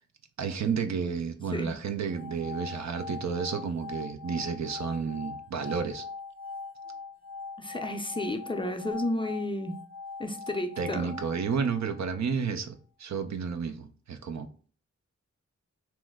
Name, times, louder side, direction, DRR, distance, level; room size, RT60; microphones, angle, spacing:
voice 1, 0.4-6.1 10.8-14.5, right 6 dB, 65° right, 0.5 m, -31 dB
sound 1, 2.0-12.2, left 4 dB, 30° right, 0.9 m, -42 dB
voice 2, 7.6-9.8 10.2-11.1, left 1 dB, 15° left, 0.5 m, -32 dB
3.0 x 2.1 x 3.4 m
cardioid pair, 50°, 30 cm